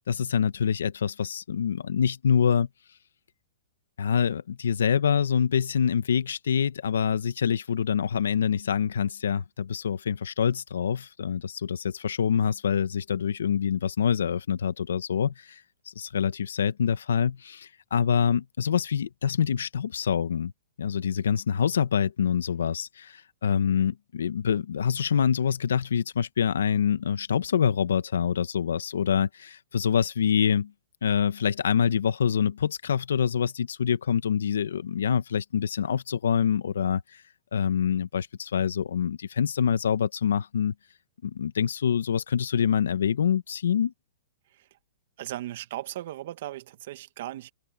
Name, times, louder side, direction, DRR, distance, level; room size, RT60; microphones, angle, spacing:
voice 1, 0.1-2.7 4.0-15.5 15.9-20.5 20.8-30.7 31.0-37.2 37.5-40.7 41.2-43.9, left 7 dB, 85° left, 1.3 m, -26 dB
voice 2, 45.2-47.5, right 14 dB, 60° right, 1.4 m, -37 dB
hypercardioid pair, 145°, 0 cm